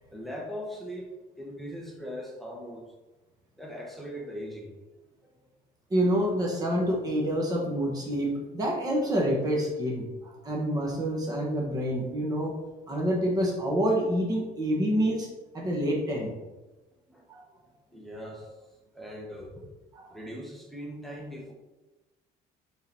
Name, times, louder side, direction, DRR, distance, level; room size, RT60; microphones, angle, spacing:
voice 1, 0.1-1.1 1.4-2.8 3.6-4.7 17.1-17.2 17.9-19.7 20.1-21.5, equal, ahead, -1 dB, 1.1 m, -40 dB
voice 2, 5.9-12.5 12.9-15.3 15.5-16.3 17.3-17.4, equal, 20° right, -1 dB, 1.3 m, -27 dB
9.3 x 3.9 x 4.3 m, 1.1 s
cardioid pair, 150°, 17 cm